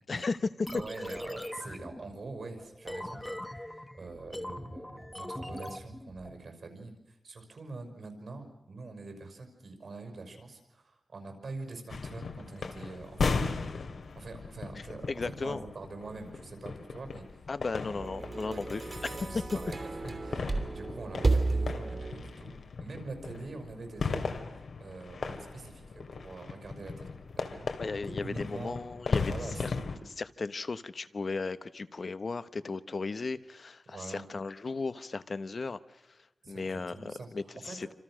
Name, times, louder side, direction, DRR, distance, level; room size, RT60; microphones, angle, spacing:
voice 1, 0.1-0.7 15.1-15.6 17.5-19.2 19.6-19.7 27.8-29.3 29.6-29.7 30.0-36.2 36.5-37.9, left 4 dB, 45° left, 14 dB, 1.0 m, -36 dB
sound 1, 0.7-6.4, left 1 dB, 10° left, 1.2 m, -42 dB
voice 2, 0.7-13.7 14.2-17.4 17.8-18.2 18.5-18.6 19.2-27.1 27.4-27.7 28.1-28.8 29.3-29.6 33.9-34.2 36.4-37.3 37.6-37.8, right 3 dB, 65° right, 6 dB, 5.9 m, -45 dB
sound 2, 11.9-30.0, left 4 dB, 80° left, 2.6 m, -37 dB
sound 3, 18.0-22.4, right 3 dB, 40° right, 3.1 m, -32 dB
28.5 x 26.5 x 6.4 m, 0.91 s
wide cardioid pair, 145°, 0 cm